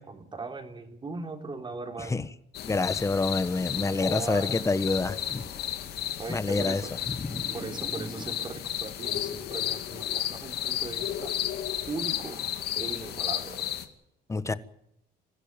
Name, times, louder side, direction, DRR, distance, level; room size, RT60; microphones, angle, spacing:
voice 1, 0.0-2.2 4.0-4.8 6.2-6.9 7.5-11.3 11.9-12.4 12.8-13.7, right 3 dB, 30° right, 3.7 m, -38 dB
voice 2, 2.0-2.3 2.6-5.5 6.3-7.5 14.3-14.5, left 3 dB, 15° left, 1.4 m, -28 dB
sound 1, 2.5-13.8, left 11 dB, 75° left, 2.6 m, -33 dB
sound 2, 3.5-11.4 12.0-12.1, right 1 dB, 10° right, 5.1 m, -48 dB
25.0 x 15.5 x 9.0 m
cardioid pair, 110°, 17 cm